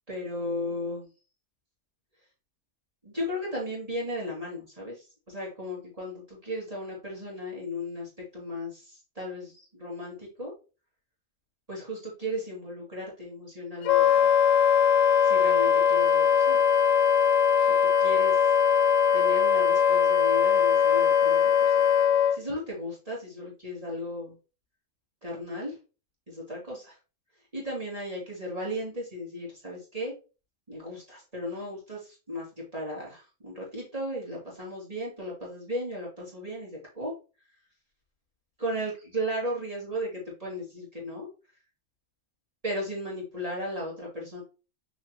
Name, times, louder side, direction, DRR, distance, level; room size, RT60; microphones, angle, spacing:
voice 1, 0.1-1.1 3.0-10.5 11.7-14.3 15.2-16.6 17.8-18.4 19.1-21.7 22.3-24.3 25.2-25.8 26.3-27.0 27.5-30.1 30.7-37.1 38.6-40.1 40.4-41.3 42.6-44.4, equal, 30° right, -5 dB, 3.1 m, -35 dB
Wind instrument woodwind instrument, 13.8-22.4, left 8 dB, 80° left, 1.2 m, -21 dB
7.4 x 4.9 x 2.8 m, 0.32 s
omnidirectional pair, 1.3 m